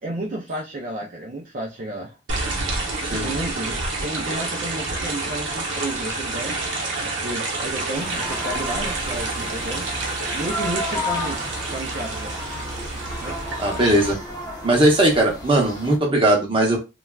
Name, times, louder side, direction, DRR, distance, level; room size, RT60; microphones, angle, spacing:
voice 1, 0.0-2.1 3.1-6.7 7.0-9.9 10.3-11.4 11.7-12.4 13.2-13.4, right 1 dB, 45° right, -2 dB, 0.5 m, -32 dB
sound 1, 2.3-14.1, right 2 dB, 80° right, 0.9 m, -28 dB
sound 2, 7.9-16.0, left 1 dB, 20° left, 0.6 m, -33 dB
voice 2, 13.6-14.2 14.6-16.8, right 1 dB, 30° right, 0 dB, 0.8 m, -18 dB
3.3 x 2.3 x 2.3 m, 0.26 s
head